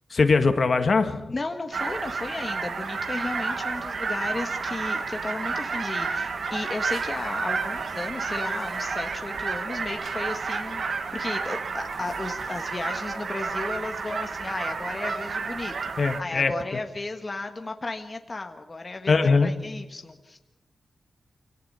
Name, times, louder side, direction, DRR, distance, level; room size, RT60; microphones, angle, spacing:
voice 1, 0.1-1.3 16.0-16.5 19.1-19.5, left 4 dB, 55° left, 8 dB, 1.9 m, -21 dB
voice 2, 1.3-20.4, left 2 dB, 35° left, 5 dB, 1.5 m, -34 dB
sound 1, 1.7-16.2, right 4 dB, 75° right, 1.8 m, -31 dB
26.0 x 18.0 x 5.6 m, 1.0 s
cardioid pair, 70°, 0 cm